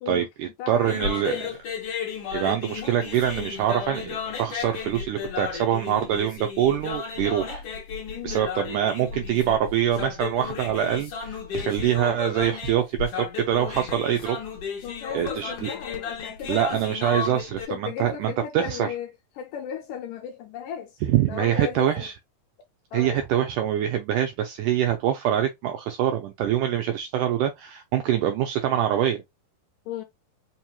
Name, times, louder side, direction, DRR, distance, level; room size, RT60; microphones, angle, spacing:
voice 1, 0.1-1.6 2.3-7.6 8.2-14.4 15.1-15.7 16.5-18.9 21.0-22.1 22.9-29.2, right 10 dB, 80° right, 1.8 m, -25 dB
voice 2, 0.6-1.5 8.1-8.4 14.8-16.9 17.5-19.1 19.4-21.0 21.3-22.1 22.9-23.3 29.9-30.0, left 9 dB, 80° left, 2.0 m, -35 dB
sound 1, 0.8-17.7, left 6 dB, 55° left, 1.7 m, -34 dB
5.3 x 2.9 x 2.2 m
omnidirectional pair, 4.2 m